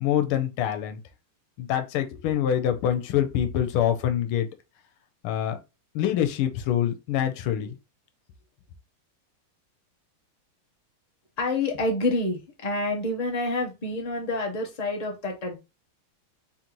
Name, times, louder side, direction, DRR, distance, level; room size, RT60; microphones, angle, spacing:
voice 1, 0.0-1.0 1.6-4.5 5.2-5.6 5.9-7.8, left 10 dB, 85° left, 1.5 m, -25 dB
voice 2, 11.4-15.6, left 2 dB, 65° left, 0.4 m, -28 dB
4.0 x 3.0 x 3.9 m
omnidirectional pair, 2.4 m